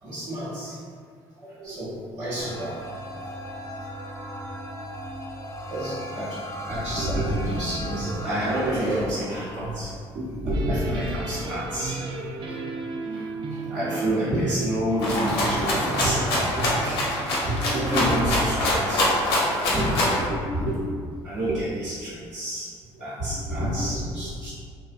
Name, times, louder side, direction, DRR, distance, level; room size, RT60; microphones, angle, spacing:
voice 1, 0.0-0.8 1.3-2.7 5.7-6.4 6.6-12.0 13.1-19.1 19.7-20.9 21.2-22.7 23.0-24.5, right 1 dB, 65° right, -14 dB, 0.9 m, -28 dB
sound 1, 2.4-8.9, equal, 20° left, 0.4 m, -36 dB
sound 2, 10.5-18.1, right 3 dB, 45° right, 0.4 m, -34 dB
Rattle (instrument), 15.0-20.2, left 1 dB, 90° left, 0.6 m, -24 dB
2.6 x 2.1 x 2.5 m, 2.1 s
hypercardioid pair, 60°, 13 cm